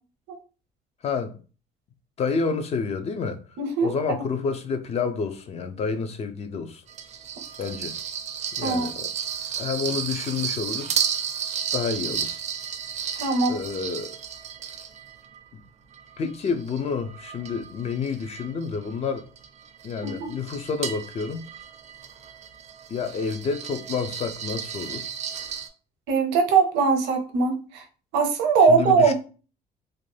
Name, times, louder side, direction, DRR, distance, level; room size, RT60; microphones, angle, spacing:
voice 1, 1.0-1.4 2.2-3.4 3.8-6.8 7.6-7.9 8.6-9.1 9.6-10.9 11.7-12.3 13.5-14.1 16.2-19.3 19.8-21.5 22.9-25.1 28.7-29.1, left 5 dB, 40° left, 0.4 m, -29 dB
voice 2, 3.6-4.3 8.6-8.9 13.2-13.5 20.0-20.3 26.1-27.8 28.1-29.1, right 5 dB, 90° right, 0.6 m, -21 dB
sound 1, 6.9-15.4 15.9-25.7, right 8 dB, 45° right, 0.4 m, -33 dB
2.5 x 2.1 x 3.2 m
cardioid pair, 110°, 17 cm